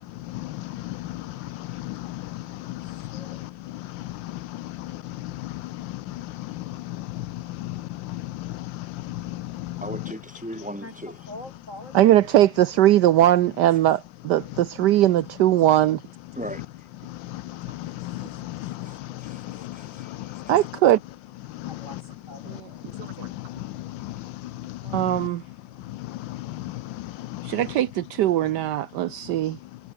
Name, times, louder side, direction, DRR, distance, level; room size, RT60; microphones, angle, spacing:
voice 1, 0.3-3.5 3.9-9.8 17.3-19.0 19.3-20.4 21.6-21.8 22.9-23.4 23.8-24.1 24.6-25.0 26.0-27.5, left 16 dB, 90° left, 1.4 m, -35 dB
voice 2, 2.3-3.5 4.8-4.9 9.1-9.4 10.8-10.9 11.3-12.0 18.0-20.6 21.6-23.2 25.7-27.6, left 2 dB, 40° left, 5.8 m, -49 dB
voice 3, 9.8-11.3 16.3-16.6 17.9-18.0 18.6-20.1, equal, 5° right, 5.6 m, -38 dB
voice 4, 11.9-16.0 20.5-21.0 22.5-22.7 23.2-23.3 24.9-25.4 27.4-29.6, right 13 dB, 70° right, 1.2 m, -20 dB
omnidirectional pair, 2.0 m